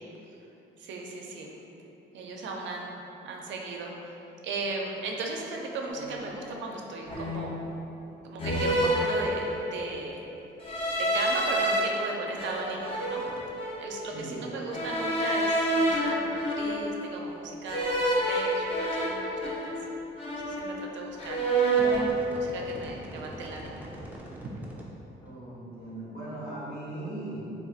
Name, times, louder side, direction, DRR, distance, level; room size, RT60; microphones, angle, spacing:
voice 1, 0.8-1.5 2.1-4.1 4.4-7.7 8.2-10.2 11.0-13.3 13.8-19.8 20.4-21.4 22.3-23.8, right 3 dB, 70° right, 0 dB, 0.4 m, -37 dB
sound 1, 6.0-6.2 7.1-7.6 8.4-9.8 10.6-11.8 12.4-13.9 14.7-17.1 17.7-19.9 20.2-20.9 21.2-22.1, right 1 dB, 30° left, 0.6 m, -28 dB
sound 2, 9.2-9.3 9.6-9.7 12.0-12.1 13.3-13.4 15.0-15.4 15.6-16.4 16.8-16.9 17.7-17.8 18.2-18.3 18.6-18.7 19.0-19.4 20.4-20.6 21.1-21.3 21.6-24.9 25.3-25.4, equal, 10° right, 0.4 m, -44 dB
voice 2, 14.1-14.5 25.2-27.5, right 1 dB, 50° left, -9 dB, 1.3 m, -38 dB
3.5 x 2.5 x 2.4 m, 3.0 s
cardioid pair, 90°, 20 cm